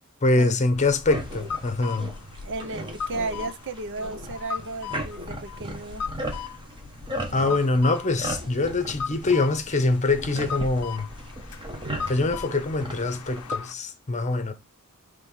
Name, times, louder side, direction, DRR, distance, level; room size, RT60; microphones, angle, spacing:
voice 1, 0.2-2.1 7.3-11.1 12.1-14.5, left 2 dB, 30° left, 0.8 m, -24 dB
sound 1, 0.7-13.7, left 6 dB, 85° left, 0.5 m, -38 dB
sound 2, 1.1-13.6, right 1 dB, 20° right, 1.2 m, -37 dB
voice 2, 2.4-6.1 7.3-7.6, right 2 dB, 55° right, 0.8 m, -34 dB
5.5 x 3.4 x 5.5 m
head